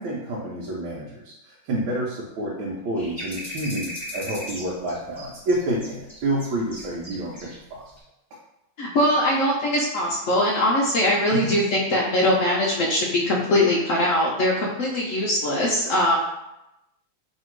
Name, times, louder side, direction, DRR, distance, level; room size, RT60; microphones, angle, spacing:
voice 1, 0.0-7.8 11.3-11.6, right 1 dB, 85° right, -5 dB, 1.5 m, -29 dB
sound 1, 3.0-7.6 7.9-8.0, left 1 dB, 10° left, 1.2 m, -37 dB
voice 2, 8.8-16.2, left 1 dB, 80° left, -3 dB, 0.7 m, -21 dB
3.3 x 2.8 x 4.4 m, 0.89 s
omnidirectional pair, 2.1 m